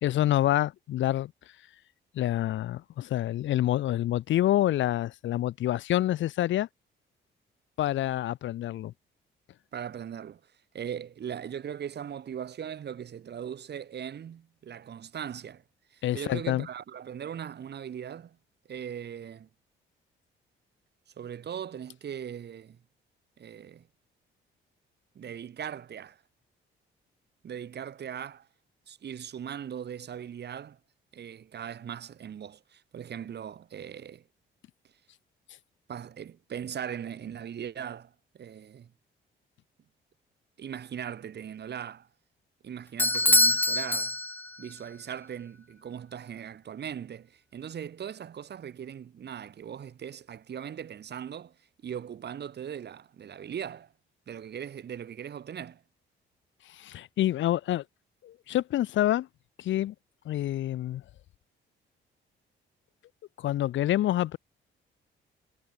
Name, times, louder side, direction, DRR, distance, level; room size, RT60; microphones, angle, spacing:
voice 1, 0.0-1.3 2.1-6.7 7.8-8.9 16.0-16.7 56.7-57.8 58.2-59.3 59.6-59.9 60.2-61.0 63.4-64.4, left 13 dB, 70° left, 0.9 m, -27 dB
voice 2, 9.7-10.4 10.7-15.6 15.9-18.4 18.7-19.5 21.2-22.8 23.4-23.9 25.2-26.2 27.4-28.5 28.9-30.8 31.1-34.2 35.9-38.9 40.6-42.1 42.6-44.2 44.6-51.6 51.8-53.9 54.3-55.8, right 8 dB, 60° right, 5.3 m, -39 dB
Bell / Doorbell, 43.0-44.7, left 2 dB, 10° left, 0.9 m, -24 dB
cardioid pair, 90°, 20 cm